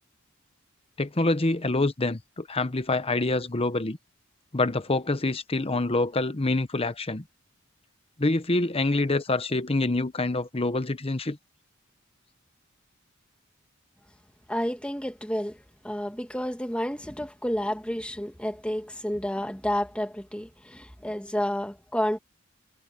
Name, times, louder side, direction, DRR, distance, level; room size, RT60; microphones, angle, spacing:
voice 1, 1.0-4.0 4.5-7.2 8.2-11.4, left 2 dB, 30° left, 1.0 m, -26 dB
voice 2, 14.5-15.6 15.8-22.2, equal, 5° left, 2.1 m, -30 dB
head